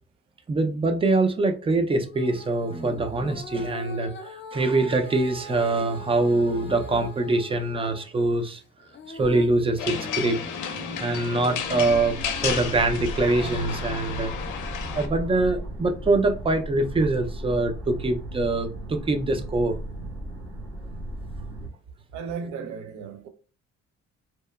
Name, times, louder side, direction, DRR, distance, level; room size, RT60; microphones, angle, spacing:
voice 1, 0.5-8.6 9.1-10.4 11.0-14.3 14.9-19.8, right 2 dB, 20° right, 0.4 m, -24 dB
Female singing, 2.1-8.1 8.5-12.8 13.4-13.5, left 2 dB, 40° left, 0.5 m, -42 dB
sound 1, 9.8-15.1, left 6 dB, 80° left, 0.6 m, -32 dB
sound 2, 11.5-21.7, right 1 dB, 45° right, 0.8 m, -36 dB
voice 2, 22.1-23.3, right 6 dB, 75° right, 0.5 m, -35 dB
2.9 x 2.0 x 2.2 m
cardioid pair, 90°, 30 cm